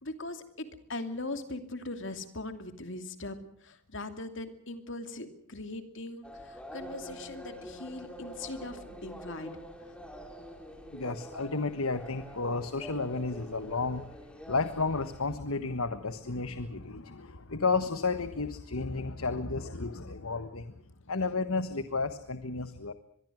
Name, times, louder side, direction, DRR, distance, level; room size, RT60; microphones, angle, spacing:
voice 1, 0.0-9.5, left 2 dB, 55° left, 8 dB, 2.7 m, -40 dB
sound 1, 6.2-15.4, equal, 5° left, 3.2 m, -46 dB
voice 2, 10.9-14.0 14.5-20.7 21.1-22.9, left 3 dB, 75° left, 11 dB, 1.4 m, -32 dB
25.0 x 22.0 x 6.4 m, 0.64 s
head